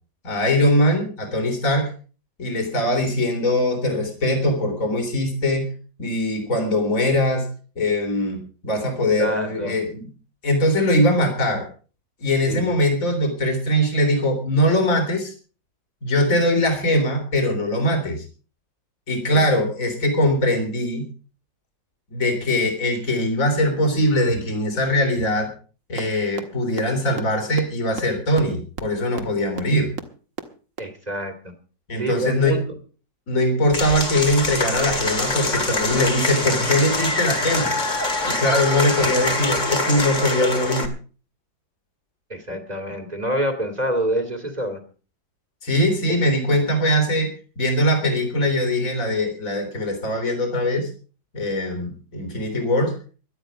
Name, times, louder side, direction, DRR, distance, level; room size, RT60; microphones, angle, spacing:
voice 1, 0.2-1.9 2.4-5.7 6.0-7.5 7.8-10.1 10.4-11.7 12.2-15.3 16.0-18.3 19.1-21.1 22.1-25.5 25.9-29.9 31.9-32.6 33.3-37.7 38.3-40.9 45.6-47.3 47.6-50.9 51.3-52.9, left 1 dB, 50° left, 3 dB, 3.9 m, -21 dB
voice 2, 9.2-9.7 12.5-12.8 19.3-19.4 30.8-31.3 32.0-32.8 42.3-44.8, right 1 dB, 25° right, 6 dB, 2.6 m, -26 dB
sound 1, 26.0-26.1 26.4-26.5 26.8-26.9 27.2-27.3 27.6-27.7 28.0-28.1 28.4-28.5 28.8-28.9 29.2-29.3 29.6-29.7 30.0-30.1 30.4-30.5 30.8-30.9, right 5 dB, 50° right, 1.9 m, -30 dB
Applause / Crowd, 33.7-40.9, left 2 dB, 25° left, 2.2 m, -24 dB
17.0 x 12.0 x 5.1 m, 0.39 s
omnidirectional pair, 1.8 m